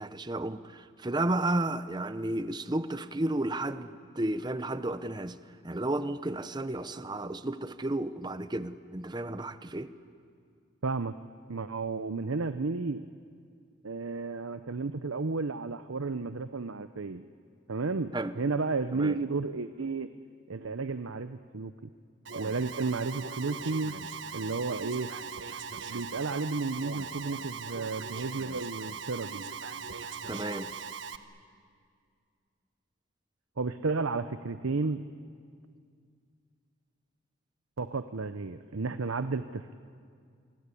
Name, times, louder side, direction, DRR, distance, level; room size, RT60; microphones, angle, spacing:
voice 1, 0.0-5.4 5.6-9.9 18.1-18.3 18.9-19.2 30.3-30.7, right 1 dB, 20° right, 12 dB, 0.8 m, -32 dB
voice 2, 10.8-11.1 11.5-13.0 13.8-17.3 17.7-20.1 20.5-21.7 22.4-24.0 24.3-25.1 25.9-29.5 33.6-35.1 37.8-39.7, right 3 dB, 85° right, 11 dB, 0.7 m, -32 dB
Alarm, 22.3-31.2, right 6 dB, 65° right, 1.2 m, -40 dB
29.0 x 23.5 x 8.5 m, 2.2 s
head